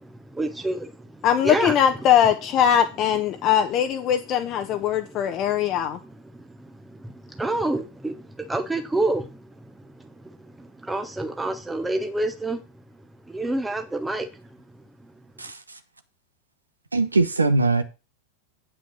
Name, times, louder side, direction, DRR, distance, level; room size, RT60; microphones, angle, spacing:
voice 1, 0.0-1.7 3.3-3.5 4.7-12.6 12.9-14.5 15.0-15.1, right 2 dB, 5° right, 0.8 m, -30 dB
voice 2, 1.2-6.0, left 9 dB, 35° left, 0.9 m, -21 dB
voice 3, 15.4-15.8 16.9-17.8, right 3 dB, 80° right, 0.9 m, -21 dB
8.7 x 5.5 x 6.1 m
figure-of-eight pair, 90°, 0 cm